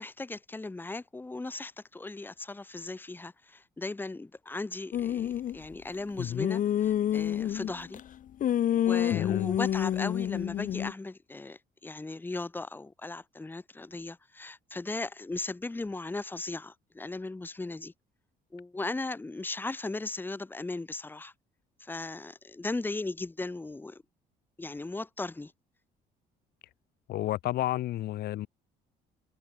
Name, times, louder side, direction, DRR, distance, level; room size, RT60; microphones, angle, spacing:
voice 1, 0.0-8.0 8.7-17.9 18.5-21.3 21.8-24.0 24.6-25.5, left 2 dB, 10° left, 1.3 m, -37 dB
sound 1, 4.9-5.6 6.2-8.0 8.4-10.9, left 10 dB, 50° left, 1.1 m, -28 dB
voice 2, 9.1-9.5 27.1-28.5, left 14 dB, 70° left, 1.4 m, -31 dB
cardioid pair, 110°, 17 cm